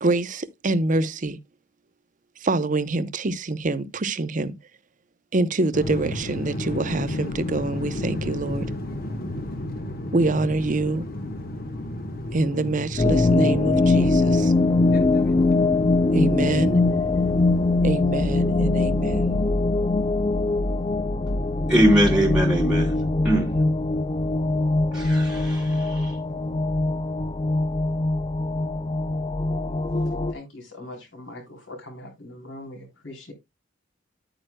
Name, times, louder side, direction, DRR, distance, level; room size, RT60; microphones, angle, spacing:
voice 1, 0.0-1.4 2.4-4.5 5.3-8.6 10.1-11.1 12.3-14.5 16.1-16.8 17.8-19.4, right 2 dB, 40° right, 0.7 m, -25 dB
sound 1, 5.7-17.9, left 1 dB, 50° left, 1.3 m, -33 dB
sound 2, 13.0-30.3, left 2 dB, 25° left, 0.4 m, -22 dB
voice 2, 21.7-22.9 23.2-23.5 24.9-26.1, equal, 5° right, 1.2 m, -22 dB
voice 3, 30.3-33.3, left 1 dB, 70° left, 3.6 m, -41 dB
10.0 x 8.8 x 2.2 m
head